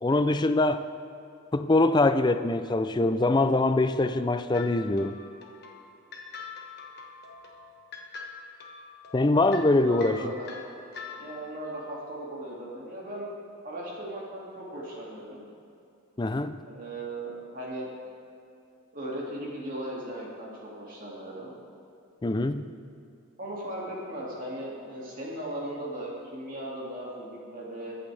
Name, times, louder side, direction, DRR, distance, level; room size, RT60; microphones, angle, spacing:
voice 1, 0.0-0.9 1.5-5.2 9.1-10.3 16.2-16.6 22.2-22.7, left 2 dB, 20° left, 11 dB, 0.4 m, -23 dB
sound 1, 4.5-11.6, left 4 dB, 50° left, 1.4 m, -44 dB
voice 2, 9.8-10.6 11.2-13.3 13.6-15.5 16.6-17.9 18.9-21.5 23.4-27.9, right 1 dB, 40° right, -5 dB, 2.3 m, -37 dB
23.0 x 8.6 x 3.4 m, 2.6 s
head